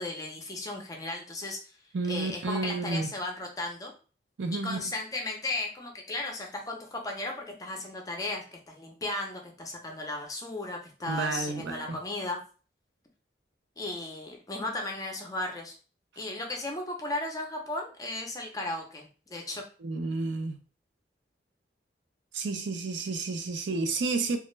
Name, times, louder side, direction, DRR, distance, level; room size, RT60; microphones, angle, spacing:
voice 1, 0.0-1.6 2.1-3.9 4.6-12.4 13.8-15.8 16.2-19.6, left 2 dB, 20° left, 0.4 m, -35 dB
voice 2, 1.9-3.1 4.4-4.9 11.1-11.8 19.8-20.6 22.3-24.4, right 3 dB, 80° right, 0.5 m, -31 dB
2.4 x 2.1 x 3.0 m
head